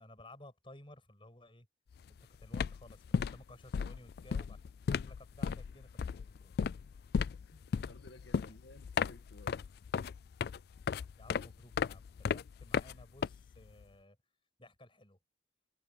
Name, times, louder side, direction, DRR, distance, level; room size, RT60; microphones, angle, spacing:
voice 1, 0.0-1.7 2.4-6.5 8.4-8.6 10.9-14.2 14.6-15.2, left 1 dB, 30° left, 6.4 m, -56 dB
sound 1, 1.9-2.1 2.4-13.8, left 6 dB, 60° left, 0.3 m, -36 dB
voice 2, 7.1-9.6, left 2 dB, 80° left, 1.8 m, -57 dB
head